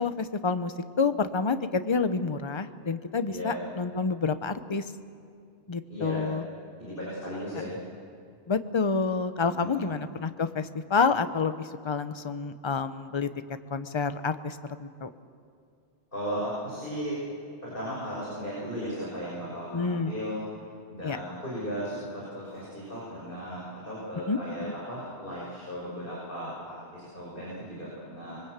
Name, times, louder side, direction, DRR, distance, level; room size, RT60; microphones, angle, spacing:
voice 1, 0.0-4.9 5.7-6.4 8.5-13.3 13.7-15.1 19.7-20.1 21.0-21.2 24.3-24.7, left 4 dB, 30° left, 11 dB, 0.8 m, -28 dB
voice 2, 3.2-3.6 5.9-6.4 6.8-7.8 9.4-9.9 16.1-17.2 17.6-20.4 20.9-28.4, equal, 55° left, -6 dB, 6.2 m, -36 dB
25.5 x 23.0 x 8.2 m, 2.3 s
omnidirectional pair, 1.1 m